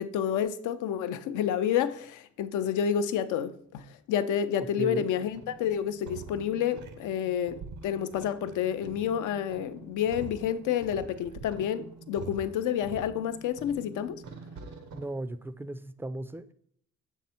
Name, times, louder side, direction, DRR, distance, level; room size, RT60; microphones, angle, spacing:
voice 1, 0.0-7.6 7.8-14.2, left 9 dB, 80° left, 0.6 m, -29 dB
sound 1, 5.1-15.0, right 5 dB, 75° right, 0.8 m, -46 dB
voice 2, 14.9-16.5, right 2 dB, 10° right, 0.4 m, -36 dB
7.3 x 3.4 x 4.2 m
cardioid pair, 90°, 30 cm